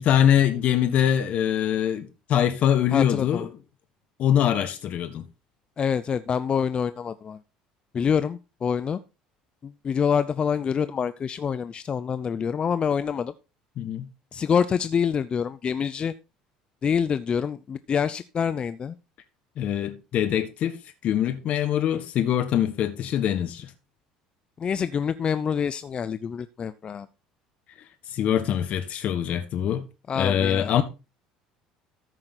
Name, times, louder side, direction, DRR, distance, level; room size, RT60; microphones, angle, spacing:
voice 1, 0.0-3.5 4.2-5.2 13.8-14.1 19.6-20.8 21.0-23.7 28.1-29.9 30.1-30.8, left 10 dB, 55° left, 1.5 m, -23 dB
voice 2, 2.9-3.5 5.8-7.4 7.9-9.0 9.6-13.3 14.3-16.1 16.8-19.0 24.6-27.1 30.1-30.8, left 7 dB, 35° left, 0.6 m, -26 dB
14.0 x 5.9 x 4.3 m
hypercardioid pair, 70°, 3 cm